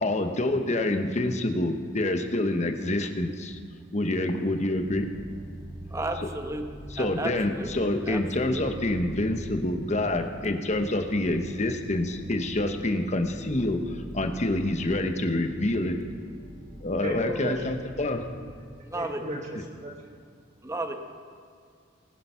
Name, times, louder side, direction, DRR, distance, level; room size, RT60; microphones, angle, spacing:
voice 1, 0.0-3.6 3.9-5.1 6.9-16.0 16.8-18.2, left 1 dB, 40° left, 6 dB, 1.1 m, -27 dB
sound 1, 4.8-18.6, right 1 dB, 70° right, 3.4 m, -43 dB
voice 2, 5.9-7.7 8.1-8.6 18.9-19.2 20.6-20.9, right 2 dB, 15° right, 5 dB, 1.1 m, -33 dB
voice 3, 17.0-17.6 18.9-19.9, right 1 dB, 40° right, -1 dB, 1.3 m, -35 dB
20.0 x 8.0 x 5.8 m, 2.2 s
head